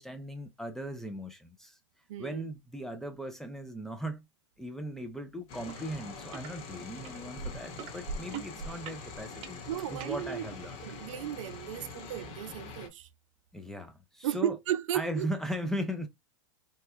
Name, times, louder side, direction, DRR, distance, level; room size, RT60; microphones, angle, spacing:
voice 1, 0.0-1.8 2.2-4.3 4.6-10.8 13.5-14.6 14.9-16.1, equal, ahead, 0.4 m, -38 dB
voice 2, 2.1-2.4 9.7-10.5 10.8-13.1 14.2-15.3, right 11 dB, 75° right, 0.5 m, -34 dB
sound 1, 5.5-12.9, left 4 dB, 40° left, 1.0 m, -45 dB
sound 2, 5.7-5.8 6.1-6.5 7.1-10.1 10.8-10.9, right 5 dB, 35° right, 0.7 m, -40 dB
3.0 x 2.1 x 3.3 m
supercardioid pair, 135°, 17 cm